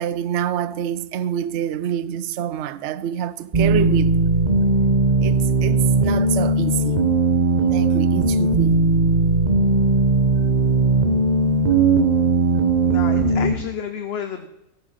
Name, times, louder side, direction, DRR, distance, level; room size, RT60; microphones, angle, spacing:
voice 1, 0.0-4.1 5.2-7.0 7.6-8.8, right 10 dB, 60° right, 0.8 m, -26 dB
sound 1, 3.5-13.5, right 3 dB, 35° right, 1.1 m, -18 dB
voice 2, 12.9-14.5, left 7 dB, 50° left, 1.0 m, -30 dB
15.0 x 8.9 x 5.7 m
omnidirectional pair, 1.5 m